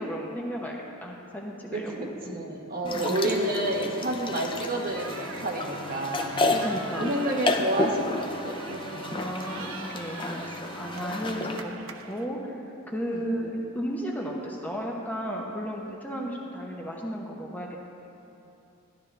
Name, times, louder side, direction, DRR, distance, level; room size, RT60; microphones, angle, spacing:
voice 1, 0.0-2.4 2.8-3.2 6.6-7.1 9.1-12.6 12.9-17.9, equal, 10° left, -2 dB, 0.9 m, -34 dB
voice 2, 1.7-6.7 7.0-8.9 13.1-13.3, right 1 dB, 45° right, 0 dB, 1.2 m, -30 dB
sound 1, 2.8-11.6, left 2 dB, 25° left, 0.5 m, -31 dB
sound 2, 4.9-12.2, right 5 dB, 70° right, 0.6 m, -42 dB
12.5 x 11.0 x 3.3 m, 2.8 s
head